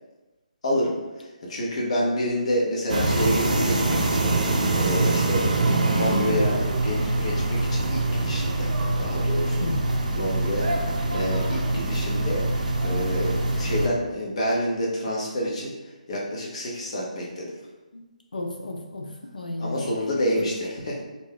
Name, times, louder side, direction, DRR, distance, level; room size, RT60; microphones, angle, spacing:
voice 1, 0.6-8.7 9.0-9.6 10.1-12.4 12.8-17.5 19.6-21.0, equal, 50° left, -4 dB, 0.8 m, -28 dB
sound 1, 2.9-13.9, right 2 dB, 70° right, 0.4 m, -24 dB
voice 2, 9.6-9.9 17.9-18.0 18.3-19.9 20.4-20.5, left 2 dB, 90° left, 1 dB, 0.4 m, -33 dB
2.6 x 2.2 x 3.4 m, 1.1 s
figure-of-eight pair, 150°, 4 cm